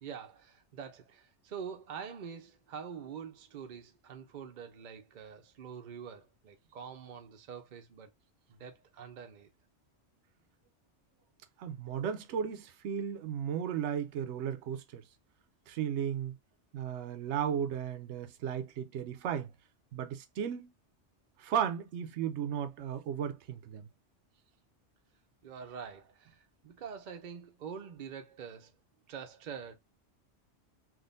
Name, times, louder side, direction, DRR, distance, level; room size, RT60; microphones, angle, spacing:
voice 1, 0.0-8.1 8.5-9.5 25.4-28.7 29.1-29.8, right 7 dB, 50° right, 0.6 m, -45 dB
voice 2, 11.6-15.0 15.7-16.4 16.7-19.5 19.9-20.7 21.4-23.9, right 8 dB, 75° right, 0.9 m, -35 dB
3.6 x 2.5 x 2.5 m
omnidirectional pair, 1.2 m